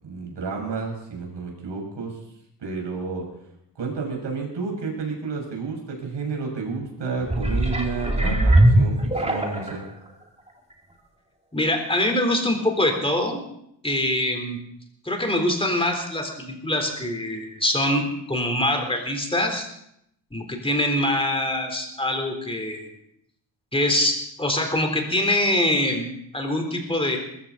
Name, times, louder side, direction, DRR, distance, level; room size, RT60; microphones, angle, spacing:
voice 1, 0.0-2.2 2.6-3.3 3.7-9.8, right 4 dB, 70° right, 0 dB, 6.7 m, -31 dB
sound 1, 7.2-9.9 10.5-10.6, right 1 dB, 15° right, 2.3 m, -20 dB
voice 2, 11.5-13.4 13.8-14.6 15.0-19.7 20.3-22.9 23.7-26.1 26.3-27.2, left 1 dB, 10° left, 3 dB, 3.8 m, -24 dB
21.0 x 15.0 x 4.1 m, 0.75 s
wide cardioid pair, 105°, 44 cm